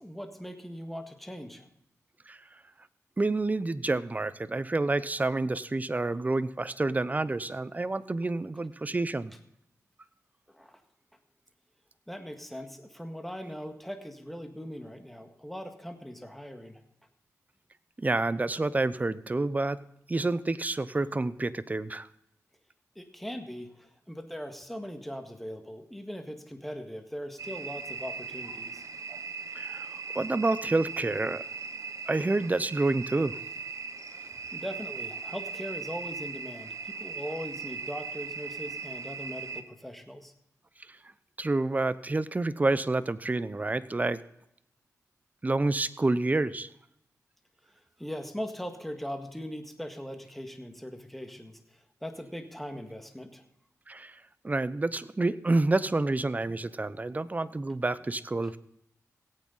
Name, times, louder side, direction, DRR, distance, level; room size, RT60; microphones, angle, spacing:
voice 1, 0.0-1.7 9.3-9.4 10.5-10.8 12.1-16.8 23.0-28.8 34.5-40.3 48.0-51.6 52.0-53.4, equal, 5° left, 5 dB, 1.7 m, -40 dB
voice 2, 3.2-9.3 18.0-19.8 20.1-22.1 29.6-31.4 32.1-33.4 41.4-44.2 45.4-46.7 53.9-54.1 54.4-58.6, right 2 dB, 25° right, 15 dB, 0.6 m, -28 dB
sound 1, 27.4-39.6, right 4 dB, 60° right, 0.9 m, -39 dB
17.0 x 8.6 x 4.0 m, 0.79 s
cardioid pair, 60°, 6 cm